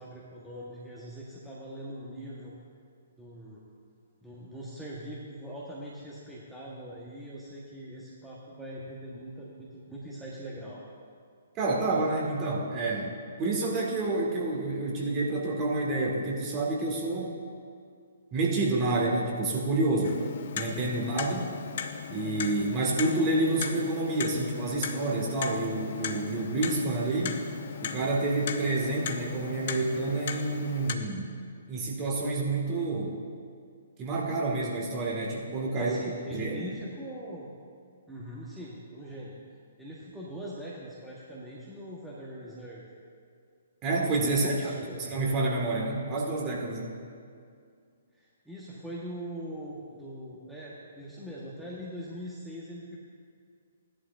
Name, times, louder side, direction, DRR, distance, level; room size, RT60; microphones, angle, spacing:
voice 1, 0.0-2.5 3.2-3.6 4.2-10.8 35.8-37.5 38.1-39.4 39.8-42.8 44.3-45.1 48.1-53.0, equal, 5° right, -7 dB, 1.3 m, -42 dB
voice 2, 11.6-17.4 18.3-20.2 20.5-21.5 22.1-27.4 27.8-31.3 31.7-33.2 34.0-36.0 36.3-36.7 43.8-47.0, right 2 dB, 25° right, -2 dB, 2.0 m, -29 dB
Clock, 20.0-31.0, left 7 dB, 50° left, 0.7 m, -37 dB
16.0 x 11.0 x 2.7 m, 2.3 s
figure-of-eight pair, 125°, 0 cm